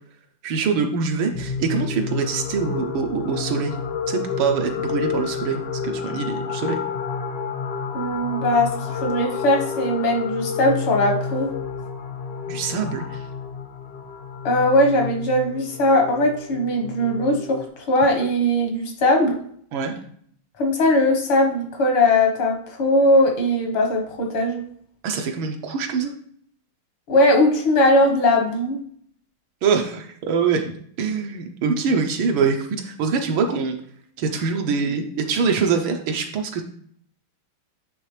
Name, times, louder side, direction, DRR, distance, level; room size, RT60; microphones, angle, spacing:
voice 1, 0.4-3.8 4.1-6.8 12.5-13.2 19.7-19.9 25.0-26.1 29.6-30.7 31.0-33.8 34.2-36.6, right 5 dB, 75° right, 4 dB, 1.5 m, -24 dB
sound 1, 1.3-17.7, left 6 dB, 60° left, 0.9 m, -30 dB
voice 2, 7.9-11.5 14.4-19.4 20.6-24.6 27.1-28.8, left 1 dB, 80° left, 2 dB, 2.2 m, -20 dB
8.6 x 3.5 x 3.2 m, 0.63 s
omnidirectional pair, 2.3 m